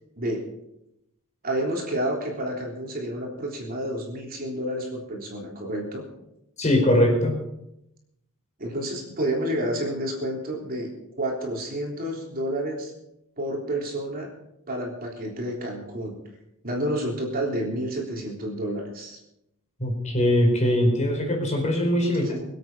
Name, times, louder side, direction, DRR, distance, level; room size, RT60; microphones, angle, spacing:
voice 1, 1.4-6.0 8.6-10.9 11.2-12.9 13.4-14.3 14.7-16.2 16.6-19.2 22.0-22.4, right 1 dB, 45° right, -1 dB, 3.5 m, -30 dB
voice 2, 6.6-7.4 19.8-22.2, left 1 dB, 35° left, 1 dB, 4.7 m, -21 dB
23.5 x 8.5 x 5.6 m, 0.84 s
head